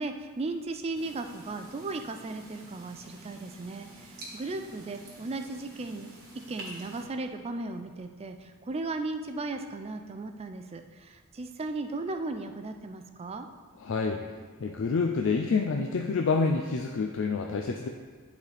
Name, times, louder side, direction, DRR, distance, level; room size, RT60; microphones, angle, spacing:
voice 1, 0.0-6.1 6.5-13.5, right 3 dB, 25° right, 7 dB, 0.4 m, -36 dB
sound 1, 0.9-7.0, right 1 dB, 45° right, 1.7 m, -48 dB
voice 2, 13.8-14.2 14.6-17.9, left 4 dB, 55° left, 3 dB, 0.4 m, -27 dB
10.5 x 4.1 x 3.4 m, 1.5 s
head